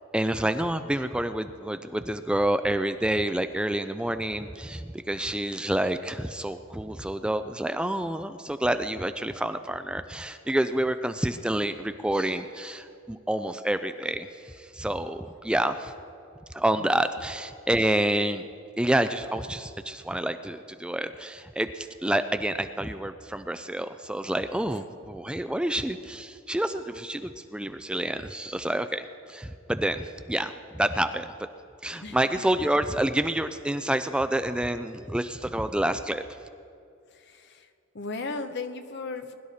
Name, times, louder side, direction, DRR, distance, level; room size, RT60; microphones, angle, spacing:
voice 1, 0.1-15.9 16.5-18.4 18.8-31.3 31.8-36.2, right 1 dB, 5° right, 10 dB, 0.3 m, -28 dB
voice 2, 37.3-37.7 37.9-39.4, left 3 dB, 60° left, 8 dB, 0.9 m, -35 dB
21.5 x 12.0 x 4.2 m, 2.4 s
head